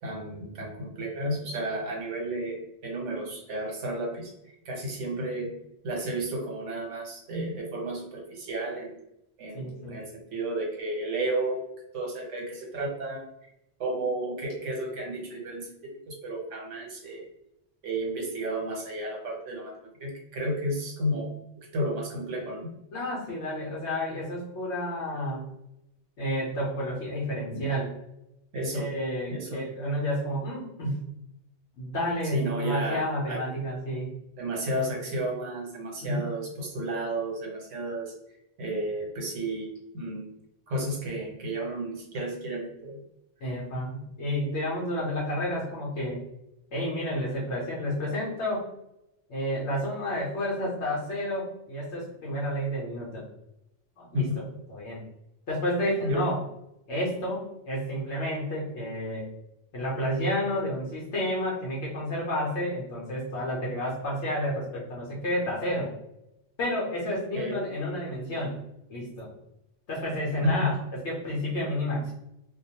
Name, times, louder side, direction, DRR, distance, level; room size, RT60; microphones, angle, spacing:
voice 1, 0.0-5.5 5.8-8.9 9.4-11.6 11.9-13.5 13.8-17.3 17.8-19.7 20.0-21.3 21.7-22.7 27.5-27.6 28.5-28.9 29.3-29.7 32.3-33.4 34.4-38.1 38.6-39.7 39.9-40.3 40.7-43.0 54.1-54.4 56.1-56.3 67.3-67.6 70.4-70.7, right 1 dB, 75° right, -2 dB, 1.2 m, -32 dB
voice 2, 9.5-10.0 22.9-25.4 26.2-27.9 28.7-31.1 31.8-34.1 36.0-36.4 43.4-46.2 46.7-48.6 49.3-53.3 54.0-54.3 54.7-55.0 55.5-56.4 56.9-59.3 59.7-65.9 66.6-68.6 68.9-69.3 69.9-72.1, equal, 70° left, -4 dB, 1.0 m, -30 dB
2.4 x 2.2 x 2.8 m, 0.85 s
omnidirectional pair, 1.2 m